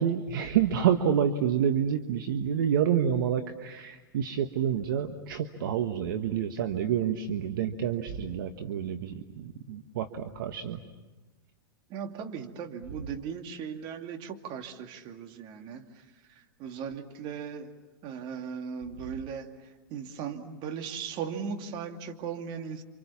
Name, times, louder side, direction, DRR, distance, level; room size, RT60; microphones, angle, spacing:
voice 1, 0.0-10.8, right 8 dB, 65° right, 7 dB, 1.4 m, -28 dB
voice 2, 11.9-16.0 16.3-17.7 18.0-22.8, right 7 dB, 45° right, 5 dB, 2.4 m, -38 dB
29.5 x 26.5 x 7.2 m, 1.2 s
hypercardioid pair, 110°, 12 cm